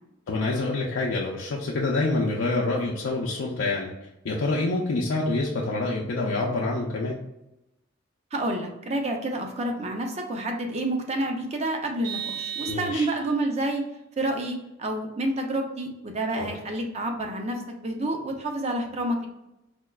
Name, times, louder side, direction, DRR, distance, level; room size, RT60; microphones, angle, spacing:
voice 1, 0.3-3.9 4.2-7.2 12.7-13.1 16.3-16.5, left 2 dB, 75° left, -2 dB, 0.4 m, -26 dB
voice 2, 8.3-13.8 14.2-19.3, right 1 dB, 35° right, 3 dB, 0.5 m, -29 dB
Vehicle horn car horn honking, 12.0-13.4, right 8 dB, 75° right, 0.7 m, -35 dB
4.3 x 2.3 x 2.2 m, 0.90 s
head